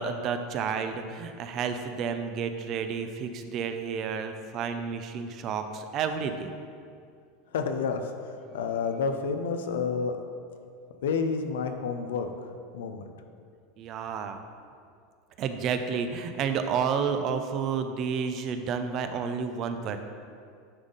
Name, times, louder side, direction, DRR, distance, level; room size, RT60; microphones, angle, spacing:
voice 1, 0.0-6.5 13.8-14.4 15.4-20.0, right 6 dB, 45° right, 8 dB, 0.5 m, -30 dB
voice 2, 7.5-10.2 11.0-12.3 12.7-13.0, left 5 dB, 80° left, 7 dB, 0.6 m, -29 dB
9.6 x 3.7 x 4.0 m, 2.3 s
hypercardioid pair, 105°, 0 cm